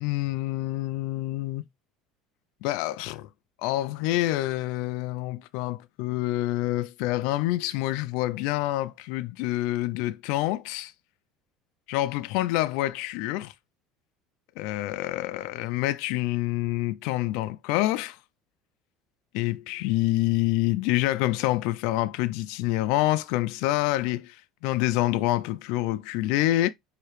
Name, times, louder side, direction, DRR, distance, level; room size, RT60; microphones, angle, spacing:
voice 1, 0.0-1.6 2.6-3.3 3.6-10.9 11.9-13.5 14.6-18.2 19.3-26.7, left 16 dB, 70° left, 0.3 m, -27 dB
4.6 x 2.8 x 3.1 m
cardioid pair, 135°, 0 cm